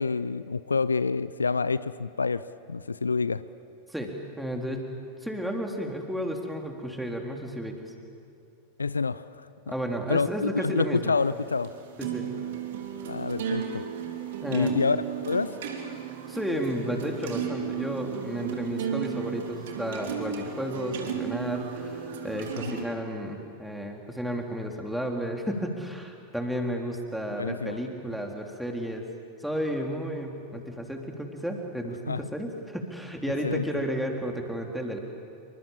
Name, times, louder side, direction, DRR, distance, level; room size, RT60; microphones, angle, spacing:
voice 1, 0.0-3.4 8.8-9.5 10.1-11.7 13.1-13.8 14.5-15.0 15.3-15.6 22.6-22.8 27.3-27.8 32.1-32.3 33.4-33.7, left 4 dB, 75° left, 16 dB, 0.6 m, -27 dB
voice 2, 3.9-4.9 5.2-7.9 9.7-11.1 12.0-12.3 14.4-14.8 16.3-29.0 29.4-35.0, equal, ahead, 2 dB, 3.5 m, -32 dB
sound 1, 11.2-22.8, right 8 dB, 55° right, 3.5 m, -34 dB
27.5 x 25.0 x 7.4 m, 2.7 s
figure-of-eight pair, 90°, 0 cm